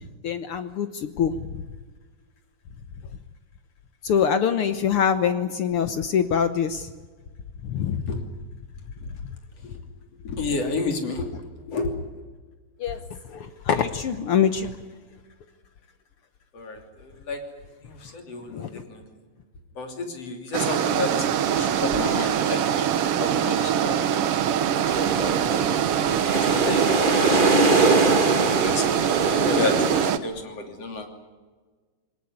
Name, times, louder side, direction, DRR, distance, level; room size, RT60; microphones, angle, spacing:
voice 1, 0.2-1.5 4.0-6.9 7.6-8.1 12.8-13.0 13.3-14.7 18.5-18.8, left 7 dB, 75° left, 10 dB, 1.3 m, -24 dB
voice 2, 10.2-11.3 11.7-11.9 16.5-17.4 17.9-19.0 19.8-21.1 21.5-24.3 24.9-25.3 26.2-27.6 28.0-28.2 28.6-31.1, left 3 dB, 50° left, 4 dB, 3.9 m, -31 dB
sound 1, 20.5-30.2, right 9 dB, 65° right, 1.5 m, -23 dB
sound 2, 24.8-30.1, right 3 dB, 35° right, 0.7 m, -23 dB
22.0 x 19.5 x 9.7 m, 1.4 s
omnidirectional pair, 3.8 m